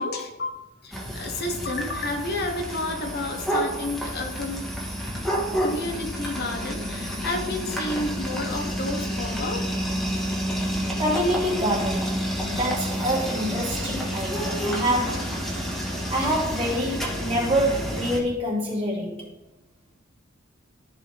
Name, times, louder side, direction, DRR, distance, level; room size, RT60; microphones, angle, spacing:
voice 1, 0.0-4.7 5.6-9.7, left 2 dB, 55° left, 1.2 m, -31 dB
sound 1, 0.9-18.2, equal, ahead, 1.6 m, -29 dB
voice 2, 11.0-15.4 16.1-19.3, equal, 30° right, 3.4 m, -26 dB
14.0 x 4.8 x 3.5 m
head